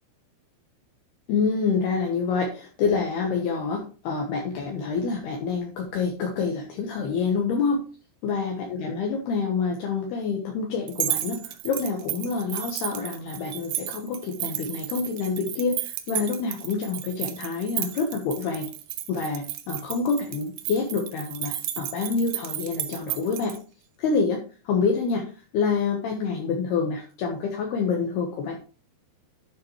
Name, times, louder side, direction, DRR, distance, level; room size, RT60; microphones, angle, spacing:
voice 1, 1.3-7.8 8.2-18.7 19.1-23.6 24.0-28.6, left 5 dB, 70° left, 1 dB, 2.9 m, -27 dB
sound 1, 10.9-23.6, right 14 dB, 85° right, 3.0 m, -33 dB
12.0 x 6.6 x 3.2 m, 0.36 s
omnidirectional pair, 5.4 m